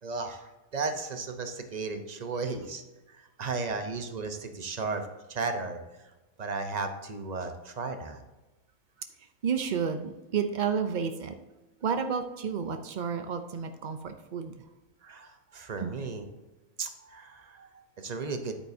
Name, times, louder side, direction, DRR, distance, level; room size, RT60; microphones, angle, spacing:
voice 1, 0.0-6.1 6.4-8.2 15.0-16.3 16.8-18.6, right 4 dB, 35° right, 7 dB, 0.7 m, -35 dB
voice 2, 9.4-11.4 11.8-14.5 15.8-15.9, right 6 dB, 90° right, 7 dB, 0.4 m, -31 dB
10.0 x 8.7 x 2.7 m, 1.1 s
omnidirectional pair, 1.7 m